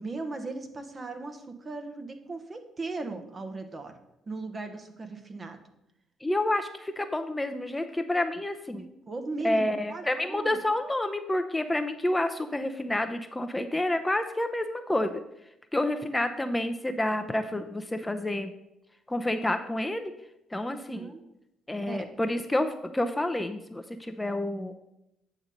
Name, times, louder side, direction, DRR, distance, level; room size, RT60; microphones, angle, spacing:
voice 1, 0.0-3.9 4.3-5.6 9.1-9.6 9.9-10.0 10.3-10.6 20.7-21.2 21.8-22.0, right 3 dB, 35° right, 7 dB, 1.2 m, -37 dB
voice 2, 6.2-8.8 9.4-15.2 15.7-18.5 19.1-20.1 20.5-21.1 21.7-24.7, left 1 dB, 15° left, 7 dB, 0.6 m, -29 dB
8.7 x 3.9 x 6.5 m, 0.87 s
hypercardioid pair, 55°, 0 cm